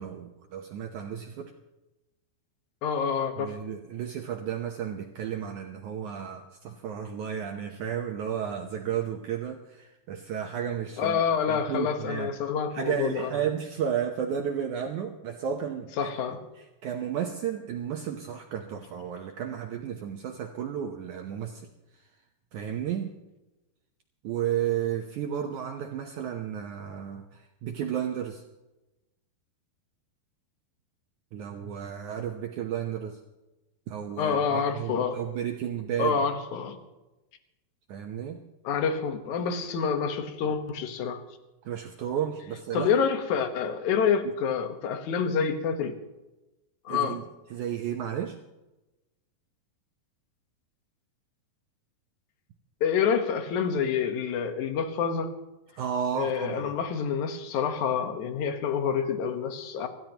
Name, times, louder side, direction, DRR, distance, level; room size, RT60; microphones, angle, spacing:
voice 1, 0.0-1.5 3.4-11.2 11.5-12.3 12.7-16.1 16.6-21.7 22.5-23.1 24.2-28.4 31.3-33.2 33.9-36.2 37.9-38.4 41.7-42.9 46.9-47.2 47.5-48.4 55.8-56.7, right 9 dB, 85° right, 1.7 m, -33 dB
voice 2, 2.8-3.6 11.0-13.3 16.0-16.4 34.2-35.2 36.0-36.8 38.6-41.2 42.7-46.0 46.9-47.2 52.8-55.3 56.1-59.9, left 6 dB, 65° left, 2.1 m, -27 dB
25.5 x 14.0 x 3.0 m
omnidirectional pair, 4.8 m